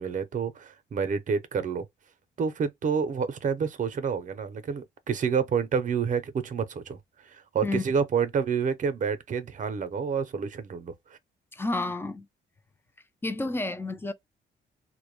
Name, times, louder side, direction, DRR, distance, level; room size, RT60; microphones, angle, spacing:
voice 1, 0.0-1.9 2.4-7.0 7.2-11.2, right 6 dB, 40° right, 0.6 m, -28 dB
voice 2, 11.5-12.3 13.2-14.1, left 2 dB, 10° left, 0.3 m, -30 dB
2.1 x 2.1 x 3.0 m
cardioid pair, 90°, 20 cm